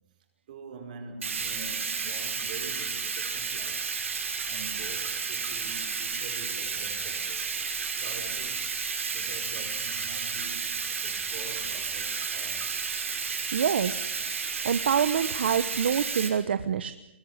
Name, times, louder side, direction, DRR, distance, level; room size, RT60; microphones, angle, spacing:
voice 1, 0.5-4.0 4.5-7.5 8.0-12.8, right 4 dB, 40° right, 5.0 m, -45 dB
Bathtub (filling or washing), 1.2-16.3, right 5 dB, 90° right, 5.9 m, -32 dB
voice 2, 13.5-16.9, right 7 dB, 60° right, 1.0 m, -27 dB
22.0 x 19.5 x 9.6 m
hypercardioid pair, 170°, 7 cm